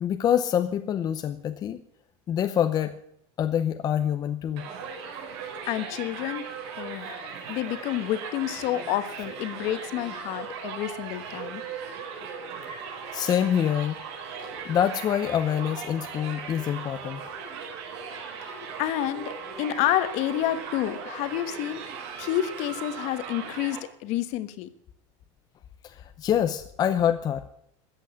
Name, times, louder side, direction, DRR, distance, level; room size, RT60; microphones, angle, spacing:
voice 1, 0.0-1.8 2.3-2.9 3.4-4.7 13.1-14.0 14.6-17.2 25.8-27.4, left 9 dB, 25° left, 8 dB, 0.7 m, -26 dB
Crowd, 4.6-23.8, right 6 dB, 75° right, 5.1 m, -38 dB
voice 2, 5.7-6.5 6.8-11.6 18.4-21.8 22.2-24.7, left 13 dB, 50° left, 12 dB, 1.4 m, -29 dB
14.5 x 8.2 x 9.5 m, 0.70 s
cardioid pair, 160°, 15 cm